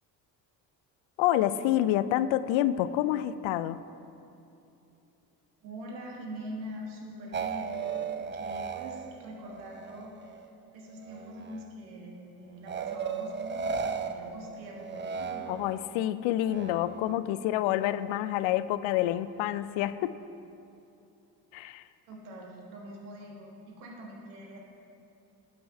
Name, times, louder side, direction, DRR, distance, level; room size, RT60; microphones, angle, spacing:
voice 1, 1.2-3.8 15.5-20.2 21.5-21.8, left 13 dB, 65° left, 15 dB, 0.5 m, -28 dB
voice 2, 5.6-7.8 8.2-10.4 10.7-15.5 22.1-24.6, equal, 85° right, -1 dB, 1.6 m, -44 dB
sound 1, 7.3-10.5 10.9-11.7 12.7-15.9 16.4-17.2, right 5 dB, 25° right, 0.6 m, -36 dB
11.5 x 5.5 x 5.4 m, 2.7 s
hypercardioid pair, 55°, 50 cm